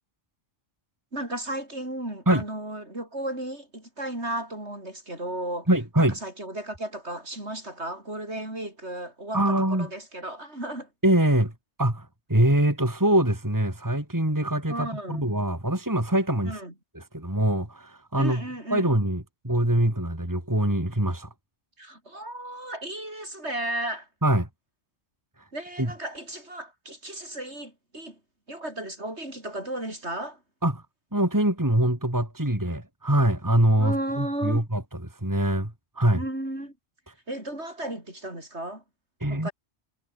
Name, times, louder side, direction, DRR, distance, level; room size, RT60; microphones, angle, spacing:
voice 1, 1.1-5.7 6.0-9.4 9.7-10.9 14.7-15.2 16.5-16.7 18.2-18.9 21.8-24.1 25.5-28.2 28.5-30.4 33.8-34.7 36.1-36.7 37.3-38.8 39.3-39.5, right 1 dB, 55° right, 8.2 m, -34 dB
voice 2, 5.7-6.2 9.3-9.9 11.0-11.5 11.8-16.6 16.9-18.4 18.7-21.3 24.2-24.5 25.8-25.9 30.6-30.8 31.1-36.2 39.2-39.5, right 1 dB, 15° right, 3.7 m, -24 dB
omnidirectional pair, 1.3 m